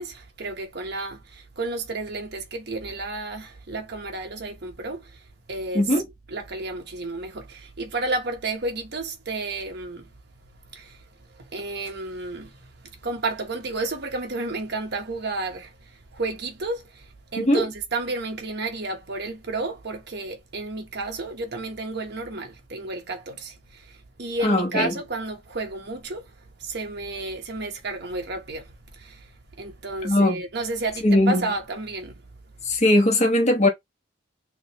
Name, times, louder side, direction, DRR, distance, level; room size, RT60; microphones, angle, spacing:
voice 1, 0.0-6.0 6.3-10.1 10.6-32.2, right 3 dB, 55° right, 1.0 m, -32 dB
voice 2, 24.4-24.9 30.0-30.4 31.0-31.5 32.6-33.7, left 1 dB, 35° left, 1.2 m, -19 dB
3.4 x 3.3 x 3.0 m
head